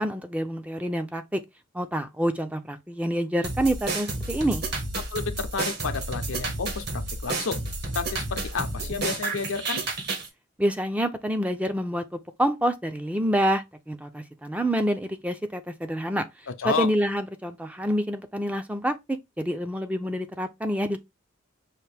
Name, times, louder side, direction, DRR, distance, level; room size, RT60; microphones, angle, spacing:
voice 1, 0.0-1.4 1.7-4.6 10.6-16.3 16.6-21.0, equal, 5° right, 0.4 m, -27 dB
sound 1, 3.4-10.3, right 3 dB, 55° right, 1.3 m, -31 dB
voice 2, 4.9-7.6 7.9-9.8 16.5-16.9, left 5 dB, 80° left, 0.7 m, -31 dB
5.7 x 2.6 x 3.3 m
head